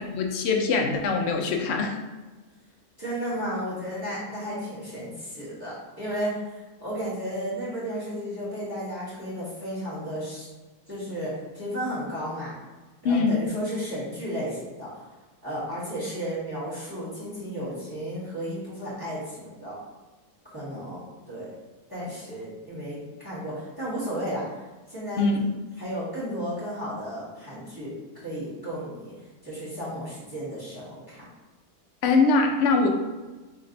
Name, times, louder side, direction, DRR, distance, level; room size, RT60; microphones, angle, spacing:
voice 1, 0.0-2.0 13.0-13.4 25.2-25.4 32.0-32.9, left 4 dB, 65° left, 2 dB, 0.6 m, -22 dB
voice 2, 3.0-10.5 10.9-12.5 13.0-15.0 15.4-19.8 20.4-21.5 21.9-24.6 24.9-25.4 25.8-29.1 29.4-31.2, equal, 15° right, -9 dB, 1.3 m, -33 dB
3.3 x 3.1 x 3.9 m, 1.2 s
omnidirectional pair, 1.7 m